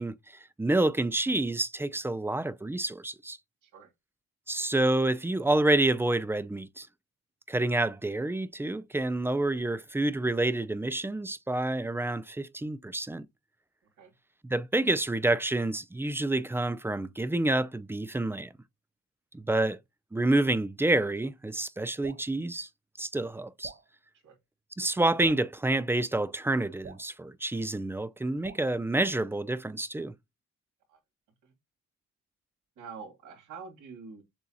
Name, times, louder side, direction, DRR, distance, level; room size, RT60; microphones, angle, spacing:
voice 1, 0.0-3.4 4.5-6.9 7.5-13.3 14.5-18.5 19.3-19.8 20.1-22.7 23.0-23.7 24.8-30.1, right 2 dB, 10° right, 0.4 m, -28 dB
voice 2, 3.6-3.9 14.0-14.1 24.2-24.4 30.9-31.0 31.4-31.5 32.8-34.2, right 5 dB, 80° right, 2.4 m, -46 dB
Drip, 22.0-22.3 23.6-23.9 25.2-25.5 26.8-27.1 28.4-28.7, right 6 dB, 35° right, 0.9 m, -47 dB
6.9 x 2.4 x 2.9 m
cardioid pair, 90°, 30 cm